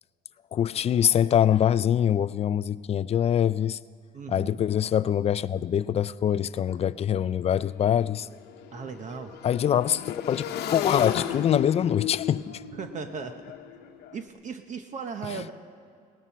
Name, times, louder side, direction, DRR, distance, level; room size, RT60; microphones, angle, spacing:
voice 1, 0.5-3.8 4.3-8.3 9.4-10.4 10.7-12.6 15.3-15.4, left 9 dB, 40° left, 0.4 m, -24 dB
voice 2, 4.1-4.6 8.7-9.4 12.7-13.4 14.1-15.5, right 6 dB, 45° right, 0.9 m, -37 dB
Motorcycle / Engine, 6.7-6.8 7.0-14.2, left 10 dB, 75° left, 1.0 m, -35 dB
18.5 x 13.5 x 5.7 m
cardioid pair, 110°, 17 cm